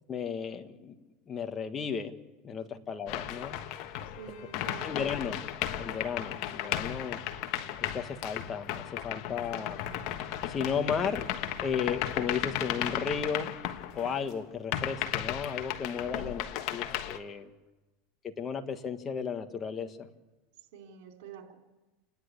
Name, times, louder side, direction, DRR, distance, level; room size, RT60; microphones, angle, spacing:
voice 1, 0.1-0.9 1.3-2.1 2.4-3.6 4.8-5.4 5.8-7.2 7.8-9.8 10.5-11.3 11.6-13.5 13.9-17.5 18.2-20.1, left 6 dB, 30° left, 7 dB, 1.6 m, -34 dB
sound 1, 3.1-14.3 14.7-17.2, left 11 dB, 60° left, 1.4 m, -35 dB
voice 2, 4.2-5.2 16.1-16.4 20.7-21.6, right 6 dB, 70° right, 2 dB, 3.9 m, -47 dB
29.5 x 10.5 x 8.4 m, 1.1 s
supercardioid pair, 115°, 0 cm